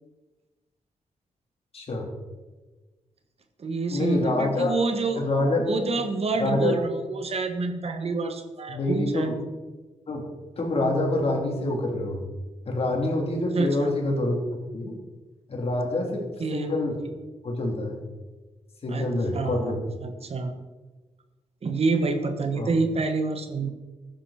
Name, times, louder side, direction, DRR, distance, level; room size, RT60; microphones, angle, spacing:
voice 1, 1.7-2.1 3.9-4.7 5.2-5.7 6.4-6.8 8.7-9.3 10.1-10.2 10.6-12.2 12.7-14.4 14.7-15.0 15.5-16.2 16.5-17.0 17.4-18.0 18.8-19.8 22.6-22.7, left 2 dB, 50° left, 0 dB, 3.5 m, -26 dB
voice 2, 3.6-5.2 5.7-9.3 13.5-13.9 16.0-16.1 16.4-16.8 18.9-19.7 20.0-20.5 21.6-23.7, right 3 dB, 55° right, 7 dB, 1.4 m, -27 dB
15.0 x 10.5 x 4.4 m, 1.2 s
cardioid pair, 95°, 13 cm